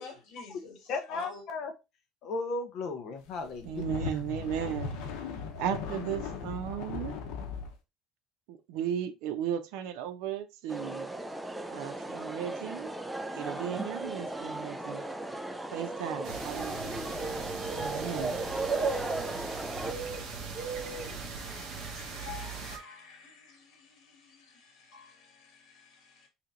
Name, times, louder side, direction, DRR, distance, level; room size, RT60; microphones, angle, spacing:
voice 1, 0.0-1.4 21.4-26.3, left 4 dB, 60° left, 1.7 m, -49 dB
voice 2, 0.9-1.7 2.2-3.9, left 3 dB, 45° left, 0.6 m, -35 dB
sound 1, 3.5-7.7, left 5 dB, 80° left, 0.8 m, -37 dB
voice 3, 3.6-4.9 5.6-7.1 8.5-11.1 11.7-12.9 13.3-15.0 15.7-16.9 17.7-18.4, right 9 dB, 75° right, 0.7 m, -35 dB
sound 2, 10.7-19.9, right 1 dB, 5° right, 0.3 m, -37 dB
sound 3, 16.2-22.8, right 4 dB, 50° right, 1.0 m, -36 dB
3.3 x 2.9 x 3.7 m
cardioid pair, 170°, 0 cm